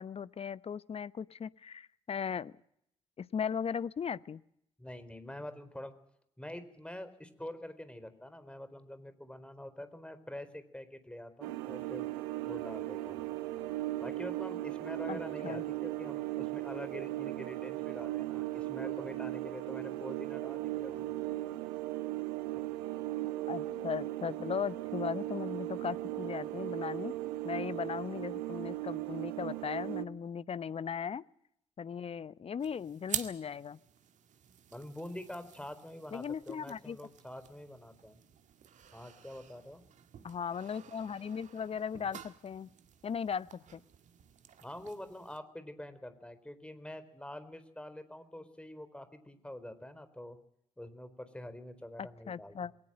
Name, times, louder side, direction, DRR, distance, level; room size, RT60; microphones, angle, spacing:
voice 1, 0.0-2.5 3.2-4.4 15.1-15.6 23.5-27.1 27.4-31.2 31.8-33.8 36.1-37.0 40.2-42.7 43.0-43.8 52.0-52.7, left 7 dB, 40° left, 19 dB, 0.8 m, -37 dB
voice 2, 4.8-5.9 6.4-12.1 12.5-13.3 14.0-21.1 34.7-38.2 38.9-39.8 44.6-50.4 50.8-52.5, left 1 dB, 5° left, 11 dB, 4.2 m, -46 dB
sound 1, 11.4-30.1, right 17 dB, 80° right, 1.2 m, -37 dB
sound 2, 32.6-45.4, right 8 dB, 55° right, 1.9 m, -48 dB
21.5 x 19.0 x 7.8 m, 0.73 s
hypercardioid pair, 45°, 15 cm